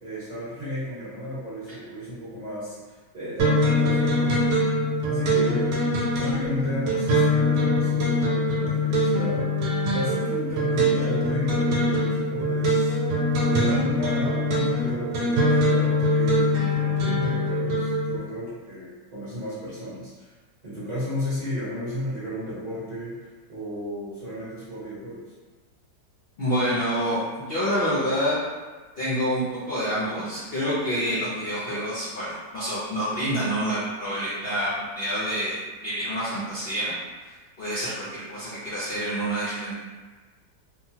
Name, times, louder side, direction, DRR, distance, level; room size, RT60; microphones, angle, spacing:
voice 1, 0.0-4.7 5.0-9.5 9.9-13.0 13.4-20.3 20.6-23.2 23.5-25.2, left 1 dB, 35° right, -12 dB, 0.8 m, -33 dB
sound 1, 3.4-18.2, left 1 dB, 85° right, 1.2 m, -23 dB
voice 2, 26.4-28.4 29.0-35.6 35.8-36.9 37.2-39.7, equal, 75° left, -9 dB, 0.5 m, -27 dB
2.9 x 2.2 x 2.8 m, 1.3 s
omnidirectional pair, 1.8 m